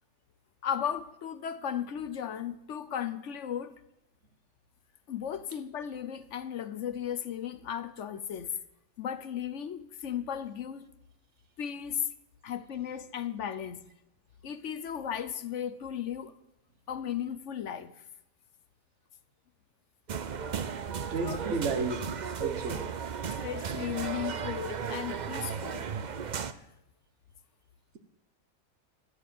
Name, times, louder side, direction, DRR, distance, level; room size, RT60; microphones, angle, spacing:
voice 1, 0.6-3.8 5.1-8.5 9.0-10.9 11.6-12.0 12.4-13.8 14.4-16.3 16.9-17.9 21.2-21.4 23.3-25.9, left 9 dB, 65° left, 1.1 m, -35 dB
sound 1, 20.1-26.5, right 6 dB, 45° right, 0.6 m, -35 dB
voice 2, 21.1-22.1 22.4-22.9, right 4 dB, 60° right, 1.5 m, -32 dB
12.0 x 11.0 x 7.7 m
omnidirectional pair, 1.4 m